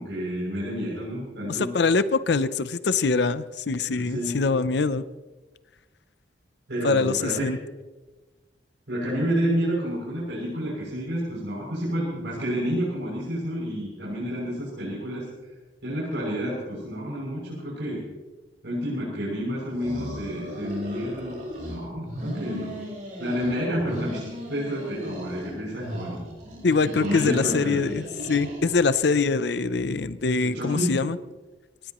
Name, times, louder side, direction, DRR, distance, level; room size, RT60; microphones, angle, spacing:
voice 1, 0.0-1.7 3.9-4.4 6.7-7.5 8.9-15.2 15.8-18.0 18.6-21.3 21.7-22.7 23.2-26.2 26.8-27.8 30.4-31.0, equal, 70° right, -8 dB, 6.9 m, -29 dB
voice 2, 1.5-5.0 6.8-7.6 26.6-31.2, left 4 dB, 60° left, 14 dB, 0.6 m, -24 dB
sound 1, 19.7-21.8 22.1-23.5 23.8-25.5 25.8-29.0, equal, 40° right, 6.2 m, -36 dB
24.5 x 19.0 x 3.1 m, 1.2 s
head